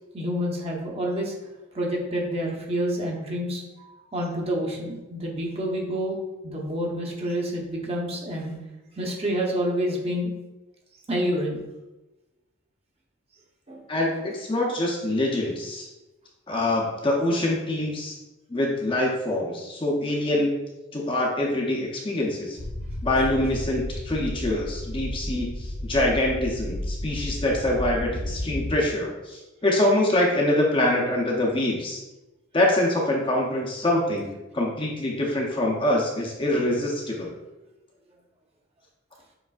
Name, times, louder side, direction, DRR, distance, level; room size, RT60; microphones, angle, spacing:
voice 1, 0.1-1.3 1.7-6.2 6.4-8.5 9.0-10.3 11.1-11.6 13.7-13.8, equal, 30° right, -1 dB, 0.8 m, -28 dB
voice 2, 13.9-15.9 16.5-18.2 18.5-20.6 20.9-22.6 23.0-32.0 32.5-37.3, left 1 dB, 25° left, -2 dB, 0.6 m, -25 dB
sound 1, 22.6-28.7, left 1 dB, 80° left, 0.7 m, -32 dB
6.7 x 3.2 x 2.4 m, 1.0 s
head